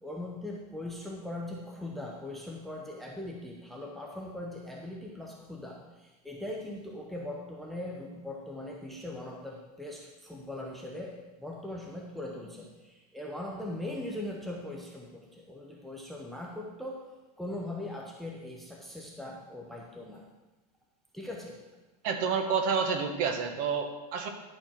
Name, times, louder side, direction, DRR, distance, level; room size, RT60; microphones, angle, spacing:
voice 1, 0.0-17.1 17.4-20.3 21.1-21.6, left 1 dB, ahead, -1 dB, 0.7 m, -40 dB
voice 2, 22.0-24.3, right 5 dB, 45° right, 5 dB, 1.1 m, -29 dB
11.0 x 4.2 x 5.9 m, 1.1 s
supercardioid pair, 165°, 20 cm